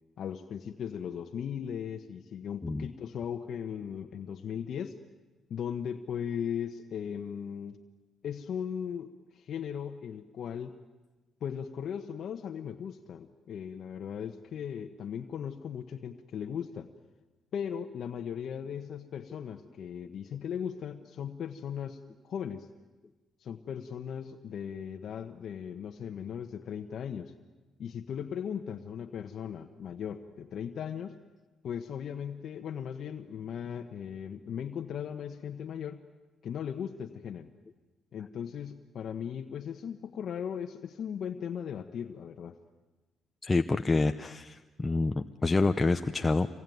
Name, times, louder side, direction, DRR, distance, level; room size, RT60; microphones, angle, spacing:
voice 1, 0.2-5.0 5.5-7.8 8.2-10.8 11.4-16.9 17.5-22.7 23.4-27.3 27.8-31.2 31.6-36.0 36.4-37.5 38.1-42.6, left 8 dB, 65° left, 5 dB, 1.1 m, -38 dB
voice 2, 43.4-46.5, left 3 dB, 20° left, 7 dB, 0.8 m, -27 dB
26.0 x 21.5 x 9.3 m, 1.2 s
cardioid pair, 90°, 0 cm